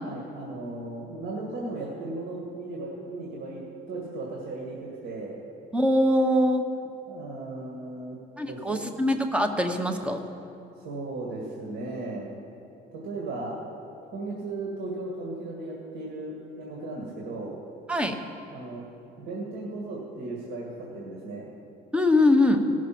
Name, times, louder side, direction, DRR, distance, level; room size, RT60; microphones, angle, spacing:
voice 1, 0.0-3.6 3.9-5.4 7.1-8.2 8.4-8.8 10.8-12.3 12.9-13.6 14.1-17.6 18.5-18.9 19.2-21.5, right 2 dB, 75° right, -3 dB, 2.0 m, -36 dB
voice 2, 5.7-6.6 8.4-10.2 17.9-18.2 21.9-22.6, left 1 dB, 5° right, 6 dB, 0.9 m, -22 dB
17.5 x 6.1 x 5.9 m, 2.8 s
cardioid pair, 110°, 17 cm